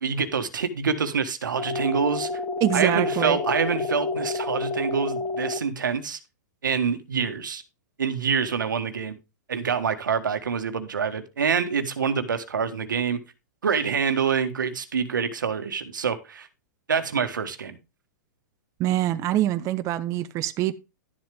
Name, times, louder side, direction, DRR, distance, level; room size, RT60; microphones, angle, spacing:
voice 1, 0.0-2.3 2.7-6.2 6.6-7.6 8.0-9.2 9.5-13.2 13.6-16.5 16.9-17.8, right 6 dB, 90° right, 1.4 m, -26 dB
sound 1, 1.6-5.6, left 3 dB, 40° left, 2.5 m, -29 dB
voice 2, 2.6-3.4 18.8-20.7, right 13 dB, 30° right, 0.7 m, -24 dB
12.0 x 7.7 x 3.5 m
hypercardioid pair, 125°, 10 cm